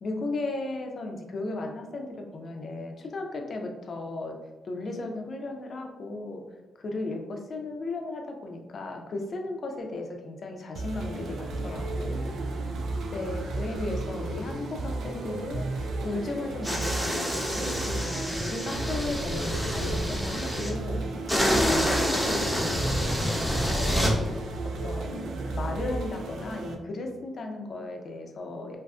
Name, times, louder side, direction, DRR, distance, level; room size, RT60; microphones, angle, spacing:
voice 1, 0.0-4.4 4.6-6.4 6.8-12.3 12.7-12.8 13.1-28.8, left 2 dB, 55° left, 3 dB, 0.4 m, -36 dB
sound 1, 10.7-26.7, right 2 dB, 85° right, 0.3 m, -33 dB
sound 2, 16.6-20.7 21.3-24.1, equal, 5° right, 0.9 m, -28 dB
2.5 x 2.4 x 2.3 m, 1.2 s
cardioid pair, 70°, 0 cm